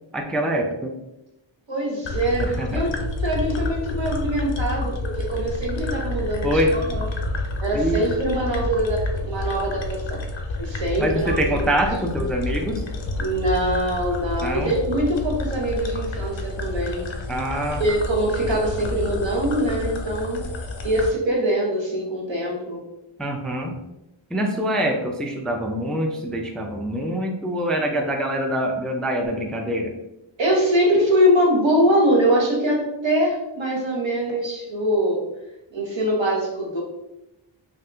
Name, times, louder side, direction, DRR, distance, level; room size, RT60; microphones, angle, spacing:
voice 1, 0.1-0.9 2.4-3.0 6.4-6.7 7.7-8.0 11.0-12.8 14.4-14.7 17.3-17.8 23.2-23.8 24.3-29.9, right 1 dB, ahead, 2 dB, 0.3 m, -25 dB
voice 2, 1.7-3.0 3.2-7.0 7.6-10.2 10.6-11.6 13.2-17.0 17.8-20.4 20.8-22.8 30.4-35.2 35.7-36.8, equal, 70° right, -2 dB, 1.0 m, -23 dB
sound 1, 2.0-21.1, left 2 dB, 70° left, 0.6 m, -29 dB
2.7 x 2.4 x 3.3 m, 0.92 s
wide cardioid pair, 45°, 47 cm